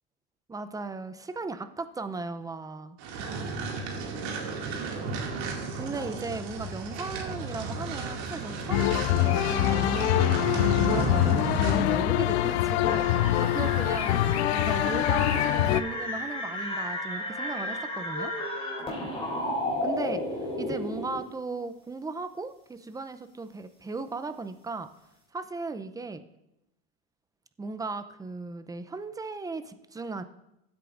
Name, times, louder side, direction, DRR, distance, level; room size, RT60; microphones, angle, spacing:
voice 1, 0.5-3.0 5.8-13.1 13.4-14.2 14.5-18.3 19.8-24.9 25.3-26.2 27.6-30.2, right 3 dB, 10° right, 10 dB, 0.6 m, -36 dB
sound 1, 3.0-12.0, right 4 dB, 60° right, 2.4 m, -33 dB
sound 2, 8.7-15.8, left 14 dB, 80° left, 0.6 m, -24 dB
sound 3, 12.8-21.2, left 1 dB, 15° left, 3.8 m, -33 dB
15.5 x 8.4 x 2.6 m, 0.88 s
supercardioid pair, 100°, 32 cm